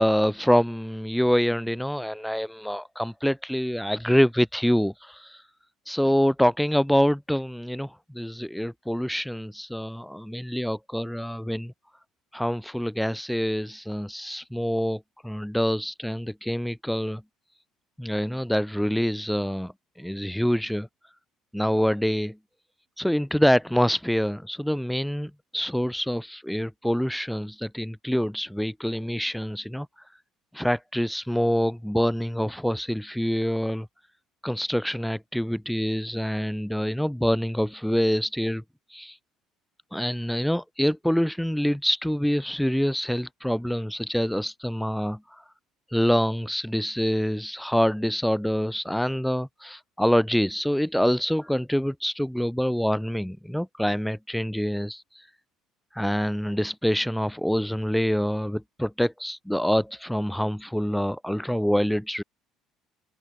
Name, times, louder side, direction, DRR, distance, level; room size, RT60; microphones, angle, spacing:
voice 1, 0.0-5.4 5.9-11.7 12.3-17.2 18.0-19.7 20.0-20.9 21.5-22.4 23.0-29.9 30.5-33.9 34.4-38.6 38.9-39.2 39.9-45.2 45.9-55.2 55.9-62.2, equal, ahead, 7.7 m, -26 dB
open air
figure-of-eight pair, 55°, 0 cm